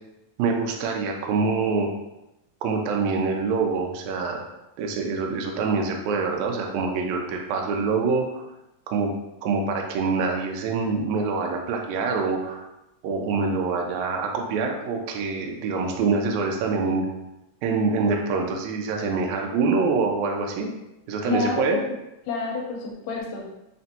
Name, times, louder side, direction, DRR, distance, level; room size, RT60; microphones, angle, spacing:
voice 1, 0.4-1.9 2.6-4.4 4.8-8.4 8.9-9.1 9.4-12.6 13.0-17.1 17.6-20.7 21.1-21.8, right 4 dB, 85° right, 1 dB, 1.6 m, -25 dB
voice 2, 21.3-21.8 22.3-23.5, left 4 dB, 80° left, -1 dB, 2.4 m, -28 dB
5.5 x 2.5 x 2.7 m, 0.90 s
omnidirectional pair, 4.0 m